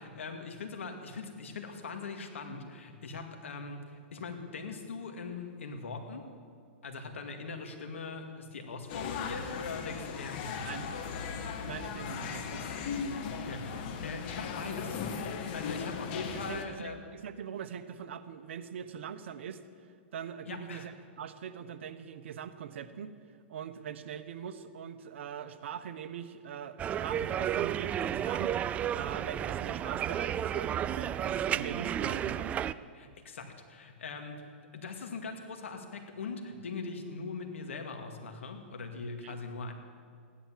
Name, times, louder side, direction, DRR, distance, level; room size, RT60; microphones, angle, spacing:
voice 1, 0.0-6.3 6.8-11.0 13.4-15.0 15.3-17.0 20.4-20.9 32.9-39.7, left 4 dB, 90° left, 4 dB, 2.2 m, -41 dB
sound 1, 8.9-16.6, left 6 dB, 45° left, 1.6 m, -37 dB
voice 2, 11.6-12.7 16.5-19.6 20.1-23.1 23.5-32.5 39.2-39.4, right 8 dB, 70° right, 9 dB, 1.1 m, -42 dB
sound 2, 26.8-32.7, right 10 dB, 20° right, 0.3 m, -32 dB
16.0 x 11.0 x 7.6 m, 2.2 s
hypercardioid pair, 140°, 7 cm